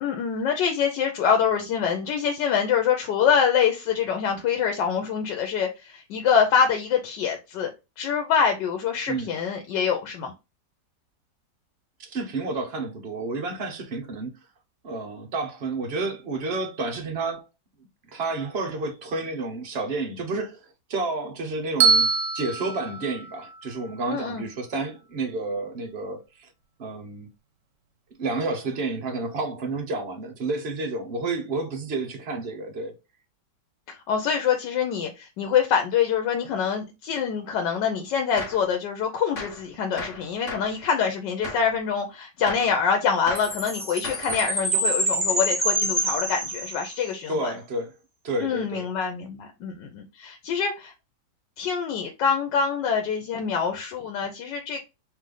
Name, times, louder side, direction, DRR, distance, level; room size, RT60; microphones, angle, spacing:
voice 1, 0.0-7.7 8.0-10.3 24.1-24.5 33.9-47.5 48.4-50.9 51.6-54.8, left 7 dB, 85° left, 1.3 m, -25 dB
voice 2, 12.0-14.3 14.8-17.5 18.1-20.6 20.9-26.5 26.8-27.3 28.2-33.0 47.3-47.9 48.2-48.9, right 3 dB, 50° right, 0.9 m, -30 dB
Bell, 21.8-24.0, right 5 dB, 85° right, 1.3 m, -24 dB
Gunshot gunfire, 38.4-38.7 39.4-39.7 40.0-40.8 41.4-41.7 42.5-42.8 43.3-43.6 44.0-44.6, left 3 dB, 50° left, 1.3 m, -36 dB
Chime, 43.4-47.1, right 1 dB, 10° right, 1.1 m, -26 dB
3.3 x 3.1 x 3.7 m
omnidirectional pair, 1.9 m